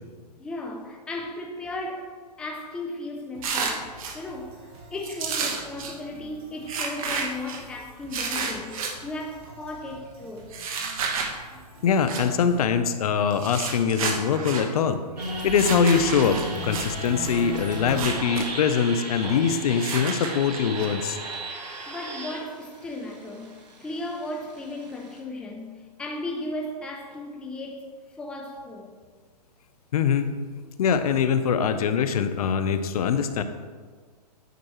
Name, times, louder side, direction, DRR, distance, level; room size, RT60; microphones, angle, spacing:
voice 1, 0.4-10.5 21.5-28.9, left 2 dB, 5° left, 0.4 m, -36 dB
sound 1, 3.3-12.6, right 1 dB, 25° right, 1.2 m, -49 dB
sound 2, 3.4-4.2 5.0-5.9 6.7-7.6 8.1-8.9 10.5-11.3 12.1-12.2 13.3-14.7 15.5-16.9 17.8-18.5 18.7-18.8 19.8-20.9, right 5 dB, 55° right, 1.1 m, -30 dB
voice 2, 11.8-15.0 15.4-21.2 29.9-30.3 30.8-33.4, left 6 dB, 60° left, 0.6 m, -23 dB
sound 3, 15.2-25.2, right 2 dB, 70° right, 1.7 m, -35 dB
9.3 x 6.0 x 3.0 m
hypercardioid pair, 135°, 21 cm